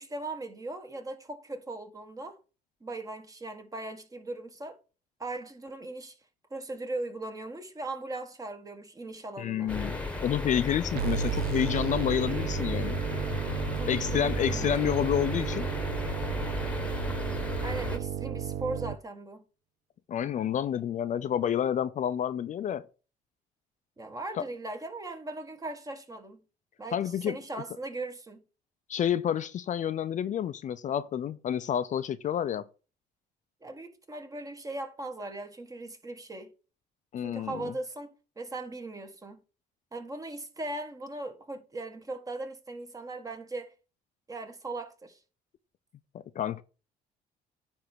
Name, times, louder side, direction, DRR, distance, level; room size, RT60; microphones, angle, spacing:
voice 1, 0.0-2.4 2.8-4.8 5.2-6.2 6.5-9.7 13.7-14.7 17.6-19.4 24.0-26.4 26.8-27.0 27.2-28.4 33.6-36.5 37.2-39.4 39.9-43.7 44.3-45.2, right 2 dB, 20° right, 1.5 m, -39 dB
voice 2, 9.4-13.0 13.9-15.7 20.1-22.8 24.4-24.5 26.9-27.4 28.9-32.7 37.1-37.7 46.1-46.6, left 9 dB, 45° left, 0.6 m, -29 dB
sound 1, 9.7-18.0, left 3 dB, 5° left, 1.4 m, -34 dB
sound 2, 11.0-19.0, right 11 dB, 65° right, 0.5 m, -33 dB
9.8 x 3.5 x 6.1 m
cardioid pair, 110°, 17 cm